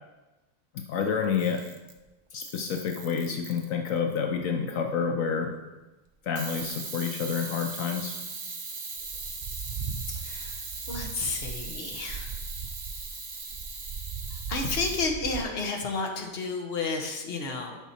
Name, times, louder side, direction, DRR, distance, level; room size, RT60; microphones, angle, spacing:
voice 1, 0.7-1.7 2.3-5.5 6.2-8.2, left 6 dB, 75° left, 4 dB, 1.1 m, -29 dB
Camera, 1.2-2.0 2.4-4.0 6.4-15.1, right 4 dB, 35° right, 0.9 m, -39 dB
sound 1, 9.0-15.4, right 5 dB, 80° right, 0.4 m, -38 dB
voice 2, 10.2-10.6 10.9-12.3 14.5-17.8, left 3 dB, 45° left, 2 dB, 1.3 m, -31 dB
11.0 x 5.9 x 4.2 m, 1.1 s
omnidirectional pair, 1.4 m